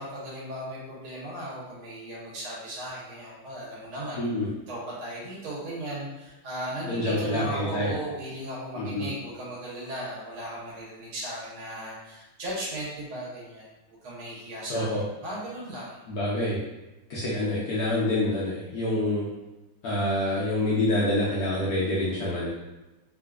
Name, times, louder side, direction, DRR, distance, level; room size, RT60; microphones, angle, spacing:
voice 1, 0.0-4.2 4.7-14.9 15.2-16.0, right 1 dB, 80° right, -6 dB, 1.9 m, -36 dB
voice 2, 4.2-4.5 6.8-7.9 8.8-9.1 14.7-15.0 16.1-16.6 17.1-19.3 19.8-22.5, left 1 dB, 80° left, -6 dB, 0.8 m, -27 dB
3.8 x 2.5 x 2.3 m, 1.0 s
omnidirectional pair, 2.3 m